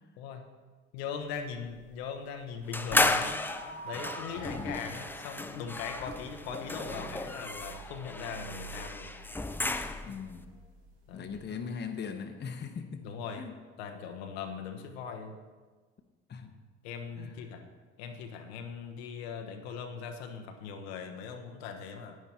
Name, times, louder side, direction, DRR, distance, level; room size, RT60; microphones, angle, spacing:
voice 1, 0.2-0.5 0.9-3.5 3.8-9.1 11.1-11.6 13.0-13.5 13.8-15.4 16.8-17.7 18.0-22.2, left 6 dB, 70° left, 5 dB, 1.0 m, -40 dB
sound 1, 1.2-11.4, right 4 dB, 70° right, 1.8 m, -49 dB
sound 2, 2.7-10.3, left 2 dB, 5° left, 0.7 m, -33 dB
voice 2, 4.5-4.9 10.0-10.6 11.1-13.0 13.4-13.5 16.3-16.5 17.2-17.4, left 6 dB, 30° left, 7 dB, 1.1 m, -40 dB
11.0 x 9.5 x 4.2 m, 1.4 s
hypercardioid pair, 60°, 33 cm